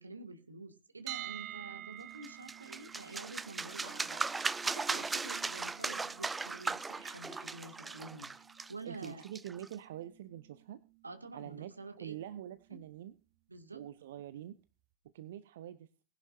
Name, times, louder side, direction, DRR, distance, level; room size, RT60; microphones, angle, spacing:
voice 1, 0.0-8.3 8.7-9.2 11.0-12.2 13.5-13.9, right 3 dB, 80° right, 7 dB, 2.2 m, -48 dB
sound 1, 1.1-13.0, right 14 dB, 40° right, 1.3 m, -51 dB
sound 2, 2.2-9.7, right 4 dB, 10° right, 0.5 m, -38 dB
voice 2, 8.8-10.8 11.3-11.7 12.0-13.1 13.7-14.6 15.1-15.9, right 11 dB, 55° right, 13 dB, 0.9 m, -45 dB
20.0 x 11.0 x 2.6 m, 0.32 s
figure-of-eight pair, 90°, 0 cm